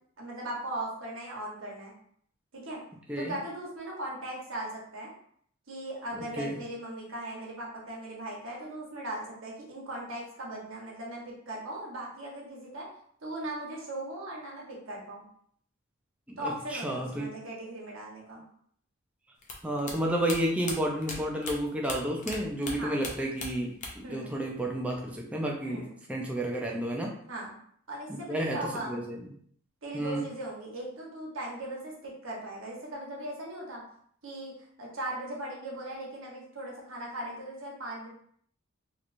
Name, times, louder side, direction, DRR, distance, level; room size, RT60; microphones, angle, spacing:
voice 1, 0.2-1.9 2.5-2.8 3.2-5.1 5.7-12.9 13.2-15.3 16.4-18.4 22.8-23.0 24.0-24.4 25.6-26.0 27.3-27.6 27.9-29.0 29.8-33.8 34.2-34.5 34.8-38.1, right 1 dB, 75° right, -3 dB, 1.1 m, -38 dB
voice 2, 16.7-17.3 19.6-25.8 26.1-27.1 28.3-28.6 28.9-29.2 29.9-30.3, right 1 dB, 5° right, -1 dB, 0.5 m, -31 dB
sound 1, 19.4-22.4 22.6-24.1 24.4-25.2, left 3 dB, 35° left, 0.6 m, -38 dB
3.1 x 3.0 x 2.5 m, 0.63 s
head